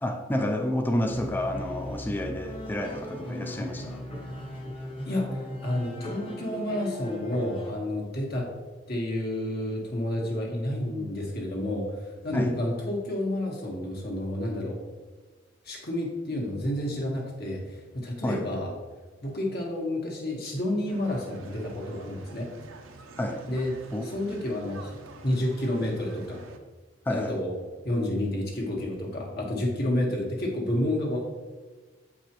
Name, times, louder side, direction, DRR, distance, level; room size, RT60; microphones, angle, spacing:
voice 1, 0.0-4.0 12.3-12.6 18.2-18.5 23.2-23.4 23.9-24.0 27.1-27.4, left 1 dB, 10° left, 4 dB, 0.3 m, -29 dB
sound 1, 0.9-7.7, equal, 25° left, 1.1 m, -38 dB
voice 2, 5.0-8.5 8.9-14.8 15.6-18.7 19.2-22.5 23.5-23.7 24.0-25.0 25.2-26.4 27.1-27.5 27.8-31.2, left 1 dB, 50° left, -1 dB, 1.4 m, -30 dB
sound 2, 20.9-26.6, right 3 dB, 90° right, 0.6 m, -47 dB
7.6 x 4.7 x 3.0 m, 1.3 s
head